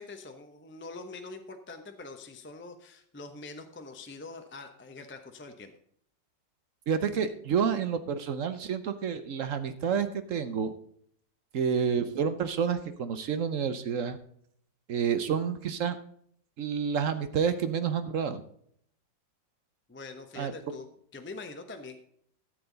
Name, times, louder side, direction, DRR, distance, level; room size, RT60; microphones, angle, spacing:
voice 1, 0.0-5.7 19.9-20.9 21.1-22.0, left 3 dB, 15° left, 6 dB, 0.4 m, -44 dB
voice 2, 6.9-10.7 11.5-14.2 14.9-16.0 16.6-18.4 20.4-20.5, right 7 dB, 60° right, 11 dB, 0.9 m, -29 dB
13.0 x 7.9 x 4.0 m, 0.64 s
omnidirectional pair, 2.0 m